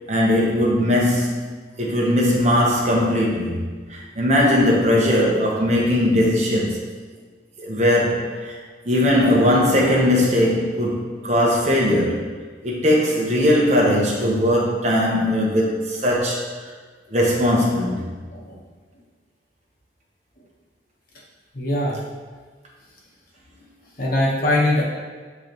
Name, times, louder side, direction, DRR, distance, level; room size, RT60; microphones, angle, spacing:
voice 1, 0.1-1.4 1.8-6.8 7.6-8.6 8.8-12.2 12.6-16.4 17.1-18.1, left 1 dB, 40° right, -3 dB, 1.1 m, -19 dB
voice 2, 18.3-18.6 21.5-22.0 24.0-24.8, left 1 dB, 50° left, -4 dB, 1.3 m, -21 dB
9.3 x 3.4 x 3.1 m, 1.5 s
head